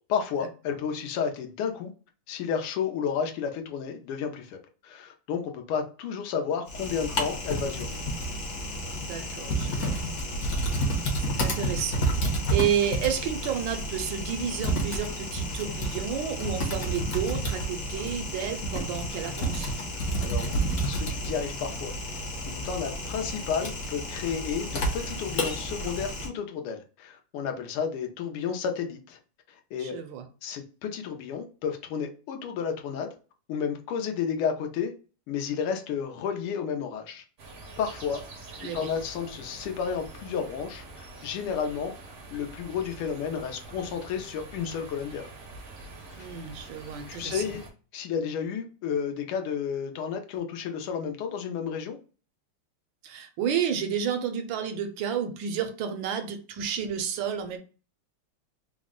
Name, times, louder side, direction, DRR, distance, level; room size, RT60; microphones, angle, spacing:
voice 1, 0.1-1.9 2.3-7.9 20.2-21.9 22.5-29.2 29.5-29.9 30.4-33.1 33.5-34.9 35.3-37.2 37.8-38.2 38.6-41.9 42.3-45.3 46.2-46.3 47.1-47.6 47.9-52.0, left 7 dB, 85° left, 1.6 m, -32 dB
Typing, 6.7-26.3, right 1 dB, 55° left, 1.1 m, -30 dB
voice 2, 9.0-10.0 10.5-10.7 11.2-12.1 12.5-19.7 29.8-30.2 38.6-38.8 46.2-47.4 53.0-57.6, right 8 dB, 75° right, 1.2 m, -31 dB
sound 1, 37.4-47.7, right 2 dB, 60° right, 0.6 m, -45 dB
3.9 x 2.1 x 3.6 m
omnidirectional pair, 2.4 m